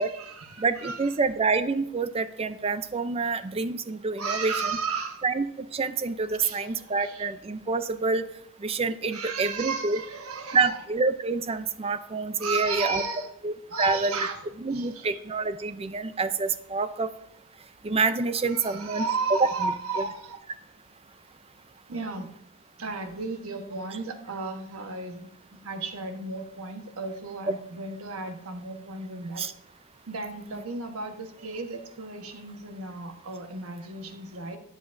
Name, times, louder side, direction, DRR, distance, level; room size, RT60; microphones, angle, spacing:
voice 1, 0.0-1.1 4.2-5.2 6.3-7.3 9.1-10.8 12.4-13.3 13.7-15.2 18.4-20.4 21.9-22.3 22.8-25.3 25.6-29.4 30.1-34.6, right 4 dB, 70° right, 5 dB, 1.2 m, -34 dB
voice 2, 0.6-4.5 5.2-8.2 8.6-10.0 10.5-13.0 13.4-14.3 14.6-17.1 17.8-19.1 19.6-19.7 29.4-29.5 30.5-30.6, right 4 dB, 25° right, 12 dB, 0.5 m, -27 dB
13.5 x 9.2 x 2.6 m, 0.73 s
head